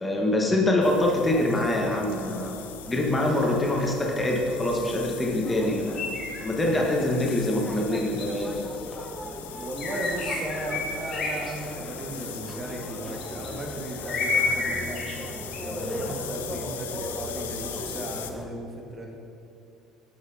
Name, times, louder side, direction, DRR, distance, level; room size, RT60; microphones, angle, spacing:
voice 1, 0.0-2.6 2.9-6.0 6.4-8.6, left 1 dB, 15° left, 0 dB, 1.1 m, -24 dB
sound 1, 0.8-18.3, left 10 dB, 75° left, 0.4 m, -41 dB
sound 2, 0.8-18.5, equal, ahead, 0.8 m, -39 dB
sound 3, 5.9-6.5 6.8-6.9 7.9-8.6 9.8-11.5 11.9-12.1 13.2-13.7 14.1-15.1 15.5-15.6, left 4 dB, 40° left, 1.5 m, -29 dB
voice 2, 9.6-15.1 15.6-19.1, right 1 dB, 30° right, 0 dB, 1.4 m, -36 dB
10.5 x 7.0 x 2.6 m, 2.7 s
figure-of-eight pair, 60°, 0 cm